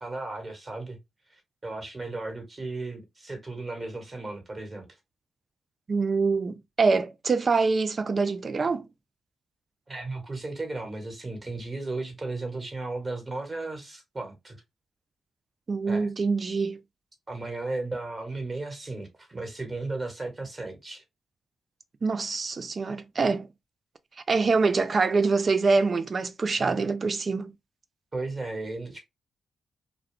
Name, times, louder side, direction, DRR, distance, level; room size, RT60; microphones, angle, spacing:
voice 1, 0.0-1.0 1.3-4.8 9.9-14.6 15.9-16.1 17.3-21.0 28.1-29.0, right 2 dB, 30° right, 1.4 m, -35 dB
voice 2, 5.9-8.9 15.7-16.8 22.0-23.5 24.3-27.5, right 4 dB, 50° right, 0.4 m, -25 dB
2.3 x 2.3 x 3.4 m
supercardioid pair, 45°, 0 cm